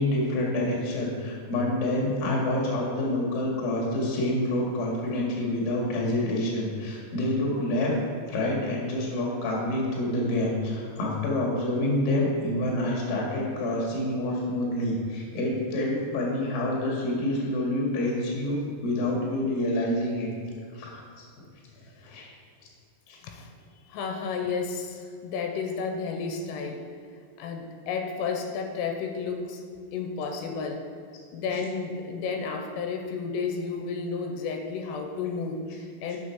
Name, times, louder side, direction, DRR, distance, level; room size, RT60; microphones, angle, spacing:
voice 1, 0.0-7.9 8.3-20.3 20.7-21.0 22.0-22.3 23.1-23.2, left 1 dB, 55° left, -2 dB, 2.8 m, -27 dB
voice 2, 23.9-26.9 27.4-29.6 29.9-30.9 31.3-36.2, left 5 dB, 90° left, 4 dB, 3.3 m, -32 dB
7.3 x 6.2 x 5.7 m, 2.1 s
omnidirectional pair, 5.8 m